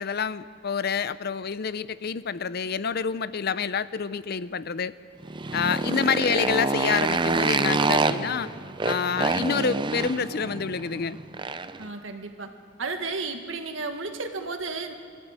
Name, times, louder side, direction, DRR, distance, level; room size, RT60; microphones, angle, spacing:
voice 1, 0.0-4.9 5.5-8.5 8.8-11.2, left 6 dB, 50° left, 15 dB, 0.6 m, -28 dB
Motorcycle, 5.2-11.8, right 3 dB, 25° right, 0.5 m, -27 dB
voice 2, 5.5-6.1 11.8-12.5 12.8-14.9, right 3 dB, 70° right, 5 dB, 1.8 m, -33 dB
24.0 x 14.5 x 8.3 m, 2.1 s
head